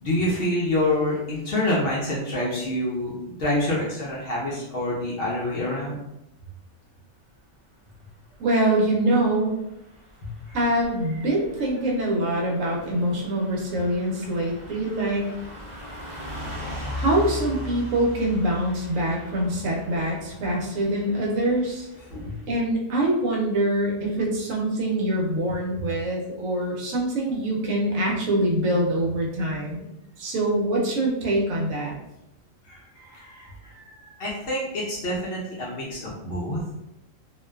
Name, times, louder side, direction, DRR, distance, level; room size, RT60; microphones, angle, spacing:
voice 1, 0.0-6.0 10.2-10.6 22.1-22.4 32.6-36.6, left 1 dB, 60° left, -5 dB, 0.7 m, -27 dB
voice 2, 8.4-9.6 10.5-15.3 16.9-21.9 22.5-29.9 30.2-32.0, right 1 dB, 75° right, -2 dB, 1.0 m, -24 dB
Car passing by / Truck, 9.4-22.4, left 1 dB, 35° right, 0.5 m, -39 dB
2.5 x 2.2 x 2.2 m, 0.86 s
omnidirectional pair, 1.4 m